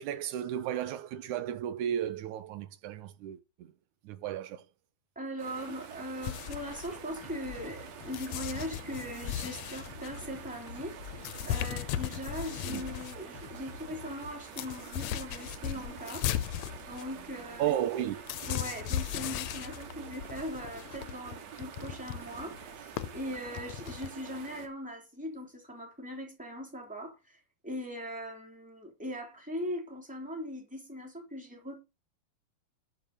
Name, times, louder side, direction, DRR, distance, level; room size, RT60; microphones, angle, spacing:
voice 1, 0.0-3.7 4.1-4.6 12.6-12.8 17.6-18.2, right 10 dB, 85° right, 2.3 m, -34 dB
voice 2, 5.1-11.0 11.4-16.3 16.8-17.7 18.5-31.8, equal, 5° right, 3.1 m, -40 dB
sound 1, 5.4-24.7, right 8 dB, 65° right, 2.7 m, -47 dB
sound 2, 6.2-7.8 8.1-13.2 13.6-13.7 13.9-24.1, left 12 dB, 75° left, 1.8 m, -37 dB
sound 3, 7.2-14.3, left 6 dB, 60° left, 1.7 m, -49 dB
11.0 x 6.0 x 6.8 m
omnidirectional pair, 3.4 m